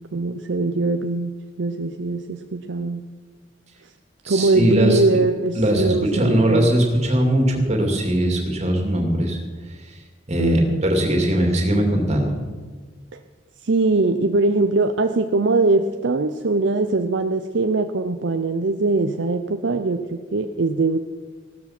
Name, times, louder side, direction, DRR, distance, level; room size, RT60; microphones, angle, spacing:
voice 1, 0.1-3.0 4.3-6.7 10.4-10.9 13.1-13.2 13.6-21.0, right 3 dB, 65° right, 7 dB, 0.6 m, -21 dB
voice 2, 4.2-5.2 5.6-9.4 9.9-10.0 10.3-12.3, equal, 35° right, 2 dB, 2.7 m, -20 dB
16.5 x 13.0 x 6.0 m, 1.4 s
head